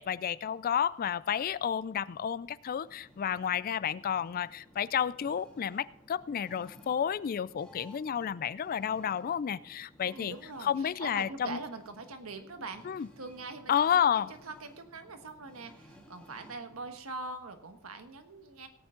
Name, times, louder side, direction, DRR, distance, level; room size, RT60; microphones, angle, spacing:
voice 1, 0.0-10.4 10.6-11.6 12.8-13.1 13.7-14.3, left 8 dB, 40° left, 18 dB, 0.3 m, -31 dB
sound 1, 2.8-17.0, left 1 dB, 5° left, 1.9 m, -58 dB
voice 2, 10.1-12.9 13.2-13.7 14.1-18.7, right 3 dB, 70° right, 7 dB, 1.4 m, -43 dB
17.5 x 8.7 x 3.8 m, 0.77 s
head